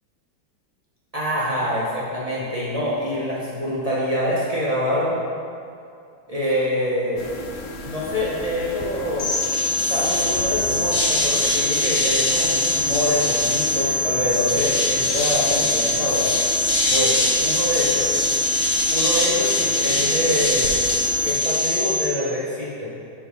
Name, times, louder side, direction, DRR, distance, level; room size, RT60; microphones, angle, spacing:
voice 1, 1.1-5.2 6.3-7.2 7.8-9.3 9.9-16.3 16.9-18.1 18.9-20.8 21.2-22.9, left 1 dB, 50° right, -7 dB, 0.4 m, -25 dB
sound 1, 7.2-21.3, left 2 dB, 75° left, 1.2 m, -35 dB
sound 2, 9.2-22.1, left 2 dB, 45° left, 1.7 m, -22 dB
7.7 x 3.6 x 5.0 m, 2.4 s
omnidirectional pair, 2.1 m